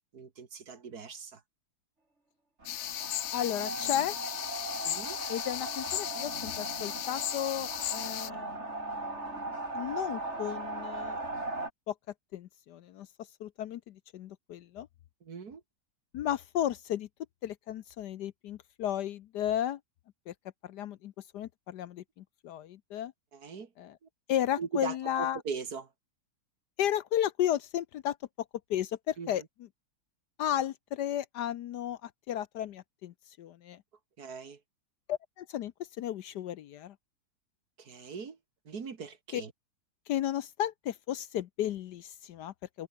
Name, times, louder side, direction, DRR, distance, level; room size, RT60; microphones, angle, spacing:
voice 1, 0.1-1.4 4.8-5.2 15.2-15.6 23.3-23.7 24.0-24.1 24.6-25.9 29.2-29.5 34.2-34.6 37.8-38.4 38.7-39.5, right 5 dB, 55° right, 2.4 m, -40 dB
sound 1, 2.6-11.7, right 2 dB, 35° right, 4.8 m, -38 dB
sound 2, 2.7-8.3, left 14 dB, 85° left, 1.5 m, -36 dB
voice 2, 3.3-4.2 5.3-11.2 11.9-12.0 12.3-13.1 13.4-14.9 16.1-17.1 17.4-19.8 20.3-20.4 20.6-23.1 23.8-23.9 24.3-25.4 26.8-28.2 28.7-29.4 30.4-33.8 35.1-35.7 36.0-36.9 39.3-39.4 40.1-42.9, left 11 dB, 70° left, 1.2 m, -34 dB
omnidirectional pair, 2.0 m